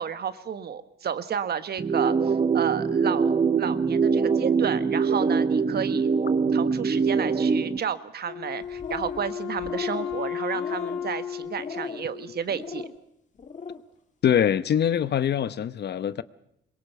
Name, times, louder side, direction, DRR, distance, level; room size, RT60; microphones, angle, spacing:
voice 1, 0.0-6.1 6.5-12.9, right 7 dB, 55° right, 1.4 m, -32 dB
Vocal Synth Loop, 1.8-7.8, right 5 dB, 30° right, 1.0 m, -23 dB
Wind instrument woodwind instrument, 8.3-12.7, left 9 dB, 75° left, 3.1 m, -34 dB
sound 1, 8.6-9.3 9.6-10.1 10.5-11.1 11.6-12.1 12.5-12.9 13.4-13.8, left 5 dB, 40° left, 2.2 m, -37 dB
voice 2, 14.2-16.2, left 9 dB, 55° left, 0.9 m, -23 dB
23.0 x 20.5 x 6.9 m
cardioid pair, 90°, 20 cm